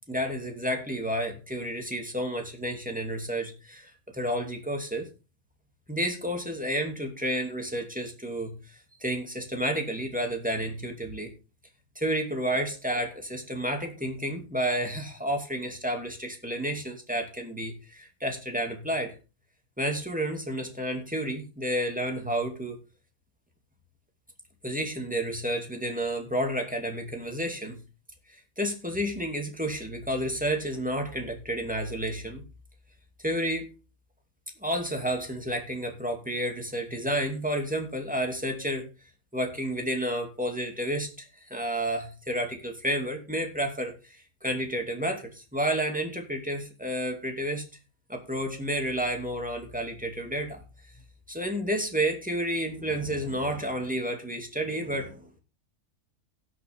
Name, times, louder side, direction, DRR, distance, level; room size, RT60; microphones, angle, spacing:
voice 1, 0.1-5.1 5.9-8.6 9.0-11.3 12.0-19.2 19.8-22.8 24.6-27.8 28.6-32.4 33.2-33.7 34.6-38.9 39.3-47.6 48.1-50.6 51.3-55.3, right 1 dB, 5° right, 3 dB, 2.5 m, -31 dB
17.5 x 6.4 x 3.6 m, 0.30 s
omnidirectional pair, 1.5 m